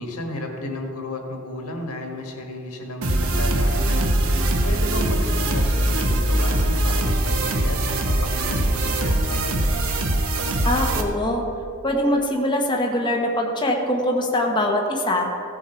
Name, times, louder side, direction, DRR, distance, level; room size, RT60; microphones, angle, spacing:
voice 1, 0.0-4.2 4.6-9.5, left 1 dB, 85° left, 2 dB, 1.7 m, -33 dB
sound 1, 3.0-11.0, right 1 dB, 70° right, 1.1 m, -22 dB
voice 2, 10.6-11.4 11.8-15.3, left 1 dB, 20° left, 0 dB, 1.1 m, -22 dB
15.0 x 7.3 x 4.4 m, 2.6 s
head